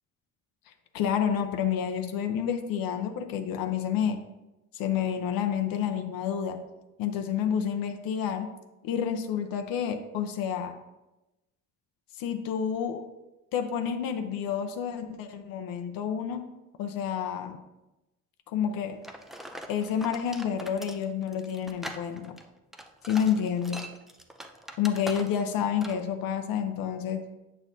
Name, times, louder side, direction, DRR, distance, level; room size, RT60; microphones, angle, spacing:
voice 1, 0.9-4.2 4.7-6.6 7.0-8.5 8.8-10.7 12.2-13.0 13.5-16.4 16.8-17.6 18.5-19.0 19.7-22.4 23.1-23.8 24.8-27.2, left 8 dB, 75° left, 6 dB, 0.7 m, -29 dB
sound 1, 19.0-25.5 25.8-26.1, equal, ahead, 0.3 m, -42 dB
8.7 x 6.3 x 2.6 m, 1.0 s
cardioid pair, 140°, 35 cm